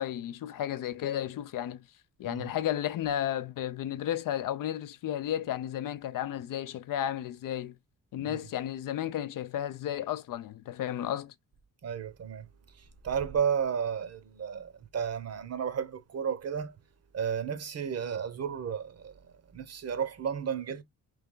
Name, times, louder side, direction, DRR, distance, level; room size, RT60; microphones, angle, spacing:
voice 1, 0.0-1.8 2.2-7.8 8.1-11.3, left 11 dB, 65° left, 0.5 m, -33 dB
voice 2, 11.8-12.5 12.7-16.7 17.1-20.8, right 7 dB, 45° right, 0.8 m, -33 dB
3.3 x 3.3 x 3.7 m
cardioid pair, 135°, 35 cm